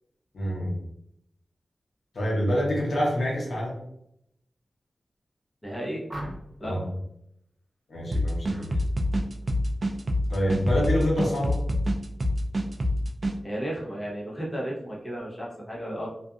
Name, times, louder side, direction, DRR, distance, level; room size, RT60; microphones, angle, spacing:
voice 1, 0.3-0.7 2.1-3.8 6.6-6.8 7.9-8.8 10.3-11.6, equal, 80° left, -3 dB, 0.9 m, -26 dB
voice 2, 5.6-6.0 6.6-6.8 13.4-16.1, right 1 dB, 15° left, -4 dB, 0.8 m, -33 dB
sound 1, 6.1-6.7 8.4-8.7 9.1-9.5, right 1 dB, 25° right, 0.7 m, -39 dB
sound 2, 8.1-13.4, equal, 50° right, 0.4 m, -26 dB
2.5 x 2.4 x 2.3 m, 0.76 s
wide cardioid pair, 85°, 0 cm